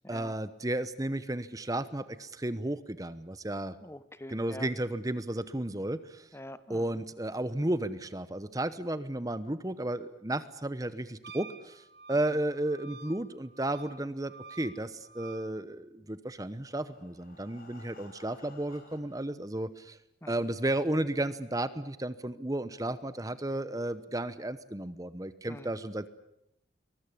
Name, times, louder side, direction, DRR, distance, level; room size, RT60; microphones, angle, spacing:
voice 1, 0.1-3.8 4.3-6.3 6.7-11.8 12.1-20.0 20.3-26.1, right 1 dB, 20° right, 14 dB, 0.9 m, -33 dB
voice 2, 3.8-4.7 6.3-7.0 20.2-20.4 25.5-25.7, left 1 dB, 15° left, 14 dB, 1.0 m, -46 dB
Wind instrument woodwind instrument, 11.2-15.5, right 4 dB, 65° right, 1.5 m, -50 dB
Breathing, 16.4-19.4 20.1-20.2 20.6-20.7 21.1-21.2, left 2 dB, 50° left, 4.5 m, -56 dB
23.0 x 20.0 x 10.0 m, 0.82 s
head